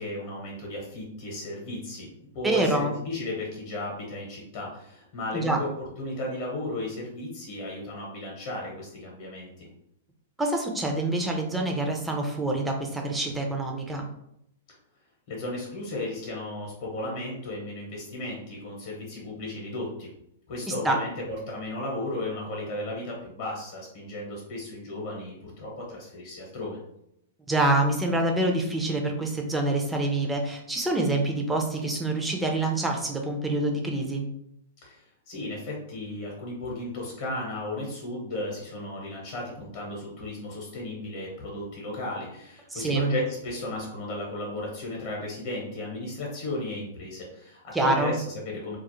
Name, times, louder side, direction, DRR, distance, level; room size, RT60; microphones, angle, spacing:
voice 1, 0.0-5.7 6.0-9.7 15.3-20.1 20.5-26.8 34.8-48.8, left 1 dB, 50° left, -3 dB, 0.9 m, -35 dB
voice 2, 2.4-2.9 5.3-5.6 10.4-14.1 20.8-21.0 27.5-34.3 42.7-43.1 47.7-48.2, right 2 dB, 10° right, 2 dB, 0.5 m, -26 dB
2.3 x 2.0 x 2.9 m, 0.76 s
hypercardioid pair, 135°, 0 cm